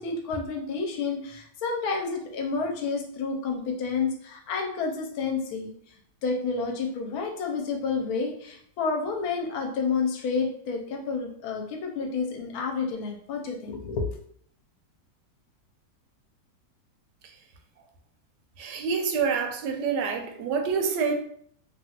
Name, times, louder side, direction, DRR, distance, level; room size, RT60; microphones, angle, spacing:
voice 1, 0.0-5.7 6.2-14.1, left 4 dB, 70° left, 2 dB, 1.0 m, -30 dB
voice 2, 18.6-21.1, right 5 dB, 90° right, 4 dB, 1.2 m, -27 dB
2.9 x 2.3 x 2.8 m, 0.64 s
omnidirectional pair, 1.8 m